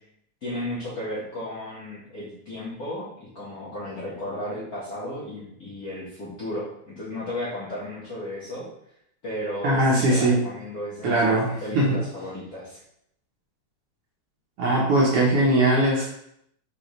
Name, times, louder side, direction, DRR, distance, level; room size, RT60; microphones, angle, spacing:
voice 1, 0.4-8.7 9.2-12.8, left 1 dB, 55° left, -10 dB, 1.0 m, -34 dB
voice 2, 9.6-10.4 11.0-12.0 14.6-16.1, right 1 dB, 70° right, -4 dB, 1.6 m, -20 dB
5.2 x 3.3 x 3.0 m, 0.74 s
omnidirectional pair, 3.3 m